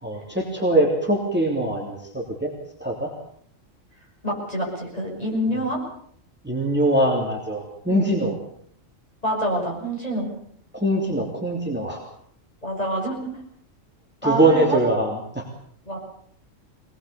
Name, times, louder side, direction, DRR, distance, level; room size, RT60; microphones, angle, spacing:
voice 1, 0.0-2.5 2.8-3.1 6.4-8.3 10.7-12.0 14.2-15.5, right 1 dB, 10° right, 0 dB, 3.1 m, -22 dB
voice 2, 4.2-5.8 7.9-8.2 9.2-10.3 12.6-13.4 14.2-14.8 15.9-16.0, equal, 30° left, -2 dB, 7.6 m, -27 dB
23.5 x 20.0 x 7.0 m, 0.63 s
omnidirectional pair, 1.4 m